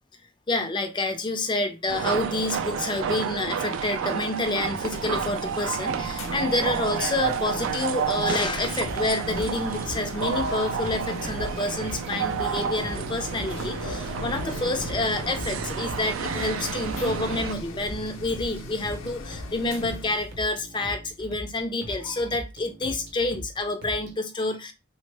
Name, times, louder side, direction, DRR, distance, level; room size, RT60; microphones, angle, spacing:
voice 1, 0.5-24.7, left 2 dB, 20° left, 0.4 m, -28 dB
sound 1, 1.9-17.5, right 7 dB, 70° right, 0.3 m, -30 dB
sound 2, 4.8-20.4, left 2 dB, 70° left, 0.6 m, -38 dB
sound 3, 8.6-24.1, equal, 50° right, 0.7 m, -41 dB
3.5 x 2.0 x 3.2 m
head